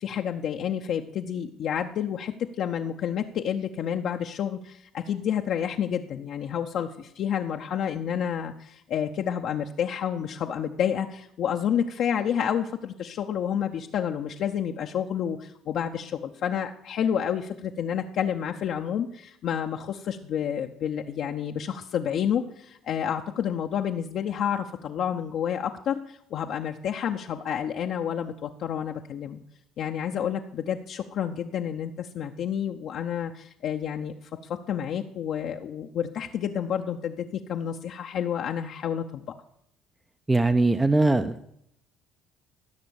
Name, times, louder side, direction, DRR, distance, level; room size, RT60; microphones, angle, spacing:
voice 1, 0.0-29.4 29.8-34.1 34.7-39.3, left 8 dB, 60° left, 3 dB, 0.6 m, -29 dB
voice 2, 40.3-41.4, right 2 dB, 15° right, 11 dB, 0.6 m, -21 dB
15.0 x 6.1 x 7.0 m, 0.73 s
hypercardioid pair, 65°, 0 cm